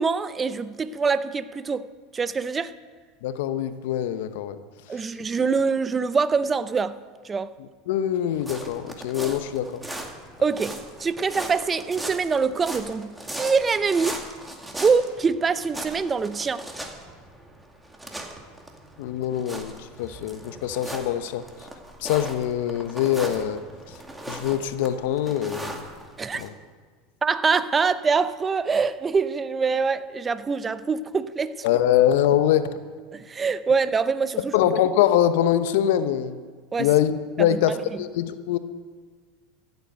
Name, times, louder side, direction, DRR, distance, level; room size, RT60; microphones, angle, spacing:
voice 1, 0.0-1.9 2.1-2.7 4.9-7.0 7.2-7.5 10.4-14.2 14.8-16.6 26.2-26.4 27.2-31.7 33.1-34.5 36.7-36.9 37.4-37.6, right 5 dB, 25° right, 0.7 m, -24 dB
voice 2, 3.2-4.6 7.9-9.8 19.0-21.4 22.0-23.6 24.3-25.8 26.4-26.5 31.6-32.7 34.5-36.4 36.8-38.6, left 11 dB, 70° left, 0.9 m, -23 dB
sound 1, 8.3-26.5, right 1 dB, 10° right, 2.1 m, -38 dB
15.0 x 8.1 x 8.1 m
hypercardioid pair, 95°, 0 cm